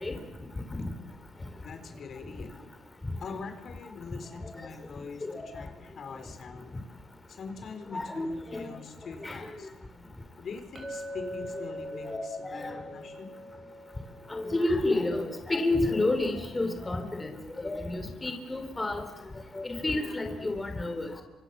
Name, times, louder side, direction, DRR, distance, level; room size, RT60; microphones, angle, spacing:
voice 1, 1.6-2.5 3.2-6.7 7.3-9.7 10.4-13.3, left 5 dB, 55° left, 6 dB, 4.5 m, -43 dB
voice 2, 7.9-8.7 9.2-9.5 11.6-11.7 12.0-12.2 12.4-12.8 14.3-17.3 17.6-19.0 19.5-21.1, left 2 dB, 20° left, 5 dB, 3.6 m, -30 dB
Chink clink, 10.8-15.2, equal, 35° right, 5.8 m, -42 dB
29.0 x 26.0 x 7.3 m, 1.1 s
cardioid pair, 90°, 0 cm